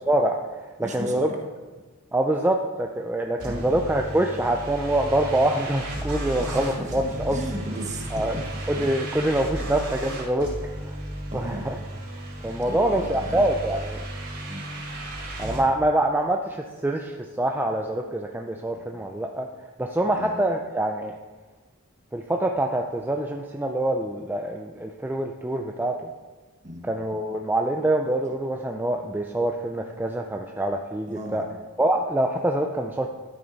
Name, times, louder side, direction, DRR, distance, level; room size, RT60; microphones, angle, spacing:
voice 1, 0.1-0.4 0.8-1.3 2.1-7.4 8.1-8.4 8.7-10.5 10.8-10.9 11.3-11.8 12.4-14.0 15.4-19.5 19.8-21.1 22.1-26.0 26.8-31.4 31.8-33.1, right 1 dB, 10° right, 2 dB, 0.4 m, -25 dB
voice 2, 0.8-1.4 3.5-3.7 6.4-8.9 9.5-9.7 11.3-11.7 12.6-13.4 14.5-14.6 18.7-18.9 20.1-20.4 26.6-26.9 31.1-31.4, right 1 dB, 35° right, 1 dB, 1.4 m, -35 dB
sound 1, 3.4-15.6, right 1 dB, 75° right, 2.7 m, -34 dB
12.0 x 6.9 x 4.1 m, 1.3 s
head